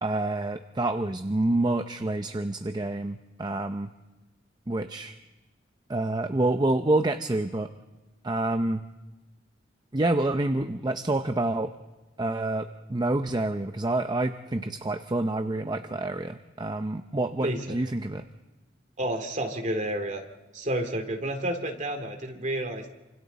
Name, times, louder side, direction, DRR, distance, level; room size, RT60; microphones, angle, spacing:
voice 1, 0.0-3.9 4.7-5.1 5.9-7.7 8.2-8.8 9.9-11.7 12.2-18.2, right 2 dB, 25° right, 8 dB, 0.6 m, -27 dB
voice 2, 17.4-17.8 19.0-20.2 20.5-22.9, right 1 dB, 40° right, 4 dB, 2.3 m, -30 dB
28.5 x 26.5 x 4.1 m, 1.1 s
head